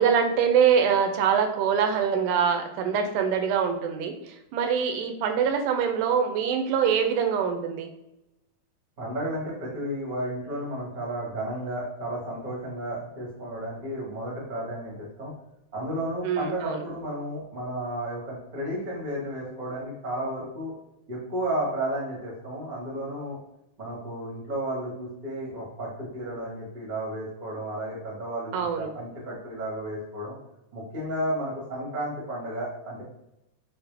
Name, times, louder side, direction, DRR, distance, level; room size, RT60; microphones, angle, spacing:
voice 1, 0.0-7.9 16.2-16.8 28.5-28.9, right 7 dB, 90° right, 5 dB, 2.1 m, -24 dB
voice 2, 9.0-15.3 15.7-20.7 21.1-23.4 23.8-30.3 30.7-33.0, right 1 dB, 60° right, -5 dB, 0.4 m, -33 dB
5.6 x 2.1 x 3.3 m, 0.87 s
omnidirectional pair, 3.5 m